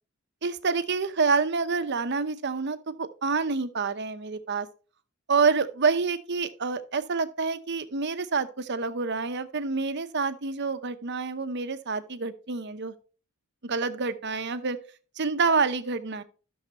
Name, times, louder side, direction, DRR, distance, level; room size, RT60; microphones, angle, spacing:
voice 1, 0.4-4.7 5.3-12.9 13.6-14.8 15.2-16.2, right 4 dB, 55° right, 0.9 m, -27 dB
13.5 x 6.5 x 3.0 m
head